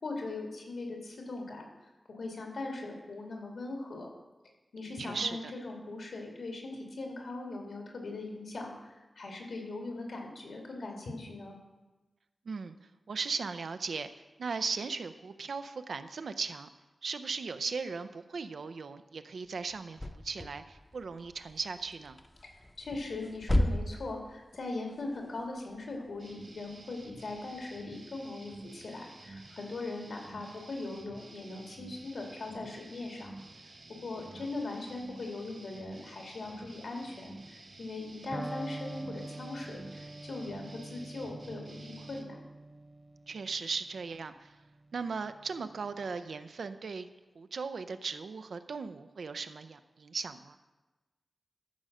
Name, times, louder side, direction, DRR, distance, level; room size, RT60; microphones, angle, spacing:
voice 1, 0.0-1.7 2.1-4.1 4.7-11.6 22.4-33.3 34.0-42.4, left 2 dB, 75° left, 1 dB, 2.3 m, -40 dB
voice 2, 5.0-5.5 12.5-12.7 13.1-14.1 14.4-16.7 17.0-22.2 43.3-44.5 44.9-47.1 47.4-50.6, right 5 dB, 85° right, 9 dB, 0.5 m, -37 dB
sound 1, 19.7-27.8, left 1 dB, 20° left, 0.7 m, -35 dB
sound 2, 26.2-42.2, right 2 dB, 50° right, 1.4 m, -51 dB
Electric guitar, 38.3-46.2, right 2 dB, 20° right, 0.4 m, -46 dB
13.5 x 4.9 x 6.5 m, 1.2 s
wide cardioid pair, 125°, 0 cm